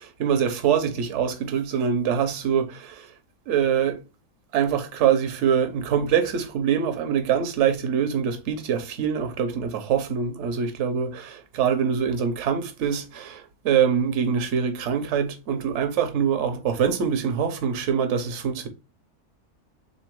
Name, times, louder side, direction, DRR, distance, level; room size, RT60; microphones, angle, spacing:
voice 1, 0.0-3.1 3.5-4.0 4.5-18.7, right 7 dB, 60° right, 1.0 m, -24 dB
3.7 x 3.0 x 4.6 m
omnidirectional pair, 1.5 m